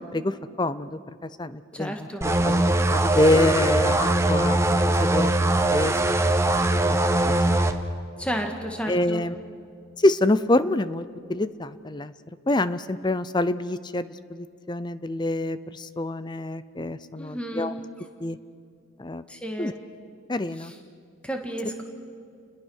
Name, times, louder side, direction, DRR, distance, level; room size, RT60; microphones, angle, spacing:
voice 1, 0.1-1.0 1.4-1.9 2.4-2.6 2.9-5.9 6.8-7.0 8.9-9.3 10.0-11.0 11.3-12.1 12.5-17.7 18.2-18.4 19.0-19.2 19.6-19.7 20.3-20.7, left 1 dB, 20° left, 14 dB, 0.6 m, -26 dB
voice 2, 1.7-2.2 8.2-9.2 17.2-17.7 19.3-19.8 20.6-20.8 21.2-21.8, equal, 5° left, 3 dB, 1.9 m, -32 dB
sound 1, 2.2-7.7, right 1 dB, 15° right, 1.0 m, -21 dB
30.0 x 21.5 x 6.5 m, 2.4 s
head